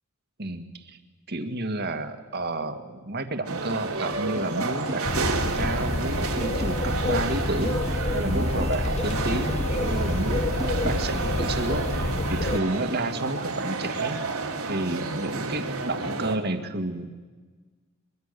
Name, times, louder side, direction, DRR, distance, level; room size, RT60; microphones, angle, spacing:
voice 1, 0.4-1.0 1.3-14.2 14.6-17.2, right 2 dB, 50° right, 7 dB, 1.9 m, -31 dB
sound 1, 3.5-16.4, right 3 dB, 85° right, 2.9 m, -31 dB
sound 2, 4.1-5.3 5.6-9.2 9.6-12.1, right 1 dB, 20° right, 1.9 m, -40 dB
sound 3, 5.0-12.6, left 2 dB, 30° left, 0.8 m, -28 dB
23.5 x 23.0 x 6.8 m, 1.4 s
head